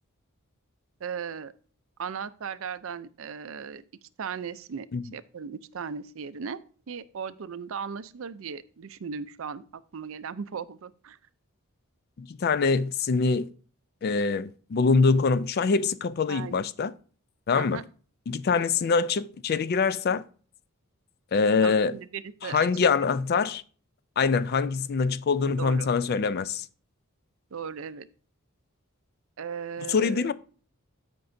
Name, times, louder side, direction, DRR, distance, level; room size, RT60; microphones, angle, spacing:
voice 1, 1.0-1.5 2.0-3.8 4.2-4.9 5.1-6.6 6.9-11.2 16.3-16.6 17.5-17.8 21.6-22.7 25.5-25.9 27.5-28.1 29.4-30.3, right 6 dB, 65° right, 0.5 m, -37 dB
voice 2, 12.2-13.5 14.0-16.9 17.5-17.8 18.3-20.2 21.3-22.0 22.4-23.6 24.2-26.7 29.9-30.3, left 5 dB, 45° left, 0.3 m, -24 dB
13.5 x 5.3 x 2.6 m
head